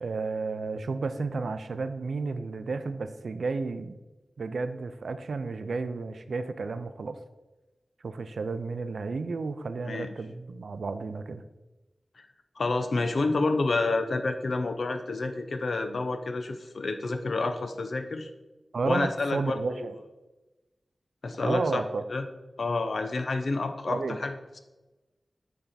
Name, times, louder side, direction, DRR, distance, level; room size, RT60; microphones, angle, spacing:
voice 1, 0.0-4.0 4.4-7.2 8.0-11.4 18.7-20.0 21.4-22.0 23.9-24.2, right 4 dB, 90° right, 11 dB, 0.4 m, -32 dB
voice 2, 12.6-18.3 18.8-19.9 21.2-21.8 22.1-22.3 22.6-24.6, left 3 dB, 80° left, 7 dB, 0.6 m, -29 dB
8.8 x 3.4 x 4.1 m, 1.1 s
wide cardioid pair, 55°, 0 cm